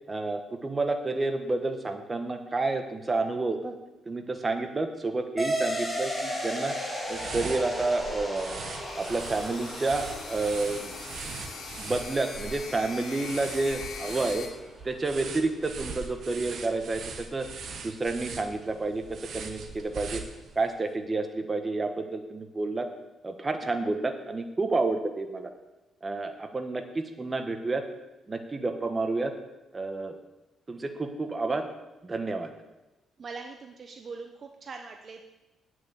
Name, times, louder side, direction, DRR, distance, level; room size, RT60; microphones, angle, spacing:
voice 1, 0.1-3.8 4.0-6.7 7.1-8.6 9.0-10.9 11.8-14.5 14.8-17.0 17.3-17.5 17.8-19.0 19.3-20.2 20.5-22.9 23.2-25.5 26.0-27.8 28.3-29.3 29.7-30.2 30.7-31.7 32.0-32.5, right 3 dB, 25° right, 6 dB, 1.3 m, -30 dB
sound 1, 5.4-14.4, equal, 10° left, 3.8 m, -36 dB
sound 2, 7.0-20.7, right 5 dB, 65° right, 1.4 m, -41 dB
sound 3, 8.7-14.5, left 4 dB, 70° left, 2.1 m, -42 dB
voice 2, 33.2-35.2, right 4 dB, 45° right, 4 dB, 0.9 m, -42 dB
8.8 x 6.4 x 8.0 m, 1.0 s
cardioid pair, 90°, 0 cm